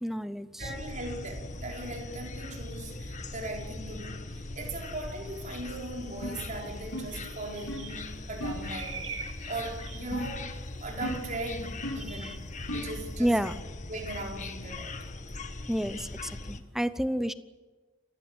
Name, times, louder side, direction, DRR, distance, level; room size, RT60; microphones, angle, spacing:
voice 1, 0.0-0.5 12.1-12.4 13.2-13.6 15.7-17.3, equal, ahead, 12 dB, 0.7 m, -30 dB
sound 1, 0.6-16.6, left 2 dB, 35° left, 1.6 m, -40 dB
voice 2, 0.6-9.2 9.5-10.5 10.8-12.4 12.7-13.4 13.9-14.9, right 2 dB, 40° right, 0 dB, 5.1 m, -39 dB
sound 2, 3.6-3.7 4.3-4.6 5.5-5.6 5.9-10.1, right 5 dB, 85° right, 5.9 m, -45 dB
sound 3, 6.2-6.5 6.9-7.3 7.7-7.9 8.4-8.7 10.1-10.5 11.0-11.4 11.8-12.2 12.7-13.0, equal, 80° left, 3.6 m, -36 dB
29.0 x 15.5 x 8.2 m, 1.3 s
head